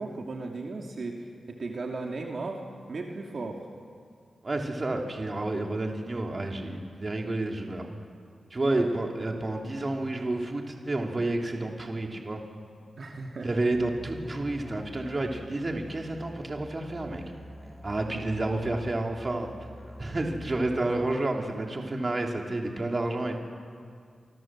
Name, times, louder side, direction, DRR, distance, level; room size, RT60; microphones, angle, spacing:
voice 1, 0.0-2.6 2.9-3.7 8.7-8.9 13.0-13.5, right 3 dB, 55° right, 1 dB, 2.7 m, -36 dB
voice 2, 4.4-7.9 8.5-12.4 13.4-17.2 17.8-19.5 20.0-23.4, right 2 dB, 30° right, 1 dB, 3.0 m, -30 dB
Musical instrument, 13.7-20.6, equal, ahead, 3.4 m, -46 dB
30.0 x 26.0 x 7.5 m, 2.1 s
wide cardioid pair, 130°, 0 cm